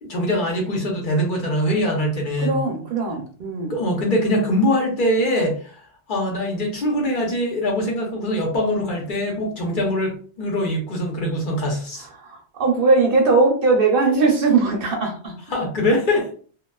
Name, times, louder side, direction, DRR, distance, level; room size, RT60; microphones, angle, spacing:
voice 1, 0.0-2.7 3.7-5.8 6.1-12.1 15.5-16.3, left 1 dB, 55° left, -1 dB, 0.8 m, -23 dB
voice 2, 2.4-3.7 12.2-15.3, right 3 dB, 60° right, 2 dB, 0.7 m, -19 dB
2.4 x 2.3 x 2.2 m, 0.43 s
omnidirectional pair, 1.1 m